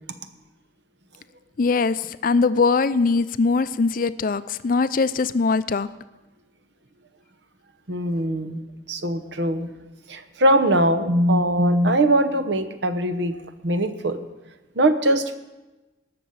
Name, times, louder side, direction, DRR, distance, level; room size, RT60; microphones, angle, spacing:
voice 1, 1.6-5.9, left 4 dB, 45° left, 14 dB, 0.4 m, -21 dB
voice 2, 7.9-8.6 8.9-9.7 10.1-14.2 14.8-15.4, right 1 dB, 65° right, 9 dB, 0.9 m, -21 dB
19.0 x 6.9 x 5.5 m, 1.1 s
head